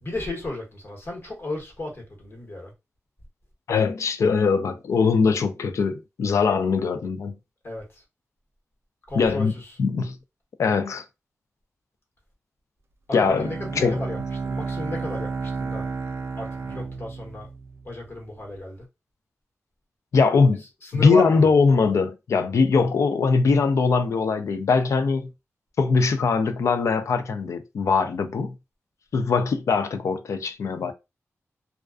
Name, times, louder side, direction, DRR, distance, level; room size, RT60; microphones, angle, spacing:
voice 1, 0.0-2.7 7.6-8.0 9.1-9.7 13.1-14.2 14.4-15.9 16.4-17.5 17.8-18.9 20.8-21.5, left 2 dB, 50° left, 1.0 m, -33 dB
voice 2, 3.7-7.3 9.1-9.5 9.8-10.2 10.6-11.0 13.1-14.0 20.1-20.6 20.9-25.3 25.8-28.5 29.1-30.9, left 4 dB, 85° left, 0.3 m, -21 dB
Bowed string instrument, 13.2-18.2, right 4 dB, 55° right, 0.3 m, -32 dB
2.3 x 2.3 x 2.3 m
wide cardioid pair, 95°, 5 cm